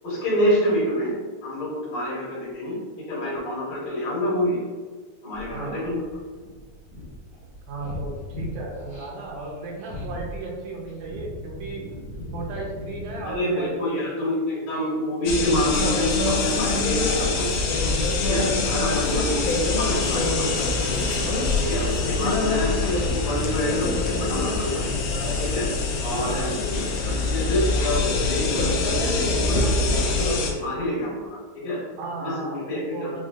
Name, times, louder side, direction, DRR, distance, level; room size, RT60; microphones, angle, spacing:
voice 1, 0.0-1.2 1.4-2.8 3.1-4.6 5.2-6.0 13.2-17.5 18.2-21.1 21.6-24.9 25.4-25.7 26.0-26.5 27.2-31.2 31.6-31.8 32.2-33.1, left 1 dB, 60° left, -7 dB, 2.3 m, -27 dB
sound 1, 5.3-13.4, left 1 dB, 50° right, 0.9 m, -38 dB
voice 2, 5.5-5.9 7.7-11.9 12.3-14.0 26.2-26.6 32.0-33.2, right 3 dB, 80° right, -2 dB, 1.9 m, -35 dB
sound 2, 15.2-30.5, left 3 dB, 85° left, 1.4 m, -24 dB
sound 3, 15.7-22.0, left 1 dB, 35° left, 0.8 m, -39 dB
6.0 x 2.2 x 2.4 m, 1.4 s
omnidirectional pair, 3.5 m